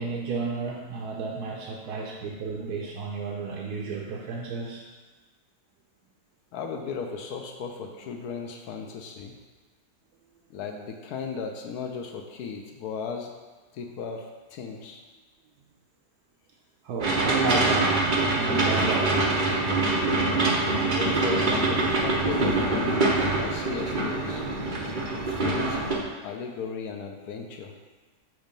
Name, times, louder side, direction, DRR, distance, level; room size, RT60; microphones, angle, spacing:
voice 1, 0.0-4.8 16.8-19.3, right 4 dB, 70° right, -2 dB, 1.1 m, -32 dB
voice 2, 6.5-9.3 10.5-13.3 13.7-15.0 20.9-24.5 25.2-25.8 26.2-27.7, left 5 dB, 70° left, 3 dB, 1.0 m, -35 dB
sound 1, 17.0-26.0, right 2 dB, 50° right, 0.6 m, -24 dB
6.3 x 3.0 x 5.1 m, 1.3 s
omnidirectional pair, 1.9 m